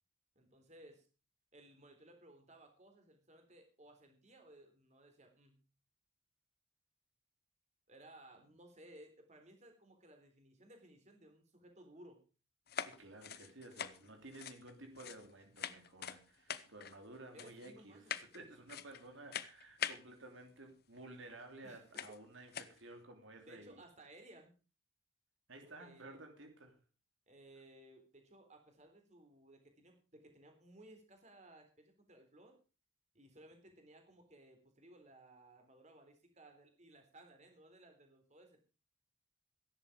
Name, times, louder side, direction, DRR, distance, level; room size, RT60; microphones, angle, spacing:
voice 1, 0.4-1.1 1.5-5.6 7.9-12.2 17.3-18.5 21.6-21.8 23.5-24.5 25.6-26.3 27.3-32.6 33.1-38.6, right 1 dB, 35° right, 3.8 m, -60 dB
sound 1, 12.7-15.3 15.6-16.2 16.5-17.0 17.4-17.7 18.1-18.4 18.7-19.1 19.3-20.0 21.2-21.3 21.9-22.2 22.5-22.8, left 8 dB, 50° left, 0.9 m, -43 dB
voice 2, 12.8-23.8 25.5-26.8, right 2 dB, 70° right, 3.0 m, -54 dB
16.5 x 11.0 x 5.1 m
head